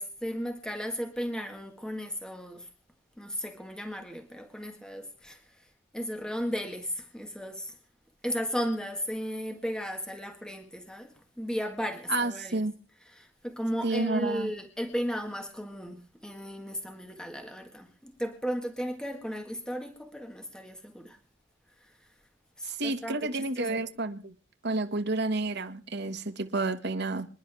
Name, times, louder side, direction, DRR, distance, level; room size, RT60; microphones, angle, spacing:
voice 1, 0.0-2.7 3.2-7.8 8.2-12.6 13.0-21.2 21.8-22.1 22.6-23.8, equal, 5° left, 1.6 m, -35 dB
voice 2, 12.1-12.7 13.8-14.5 22.6-24.3 24.6-27.3, right 2 dB, 60° right, 1.5 m, -30 dB
26.5 x 11.0 x 3.4 m
head